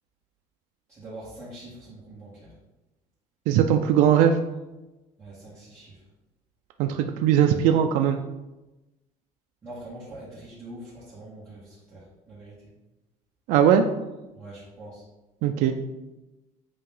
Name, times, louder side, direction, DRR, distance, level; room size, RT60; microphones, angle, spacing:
voice 1, 0.9-2.5 5.2-6.0 9.6-12.6 14.3-15.0, right 1 dB, 20° right, -12 dB, 1.9 m, -43 dB
voice 2, 3.5-4.4 6.8-8.2 13.5-13.8 15.4-15.7, right 9 dB, 70° right, 5 dB, 0.4 m, -20 dB
8.5 x 2.9 x 3.8 m, 1.0 s
cardioid pair, 180°, 14 cm